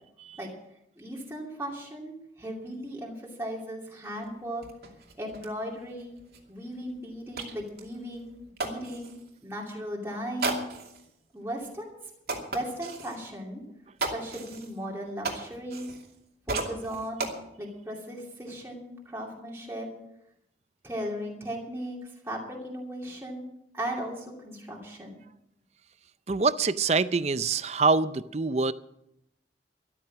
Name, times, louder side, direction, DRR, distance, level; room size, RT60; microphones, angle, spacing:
voice 1, 1.0-4.7 5.2-6.1 6.5-8.3 8.6-9.1 9.4-10.6 11.3-12.0 12.5-13.6 14.1-15.9 16.5-17.3 17.6-19.9 20.8-23.4 23.7-25.2, equal, 15° right, -3 dB, 2.6 m, -37 dB
sound 1, 4.2-4.3 4.6-9.3 10.4-11.1 11.6-11.7 12.3-13.2 14.0-16.2 16.5-17.3, right 3 dB, 60° right, 2.5 m, -36 dB
voice 2, 26.3-28.7, right 4 dB, 40° right, 15 dB, 0.5 m, -25 dB
13.5 x 12.5 x 6.2 m, 0.80 s
head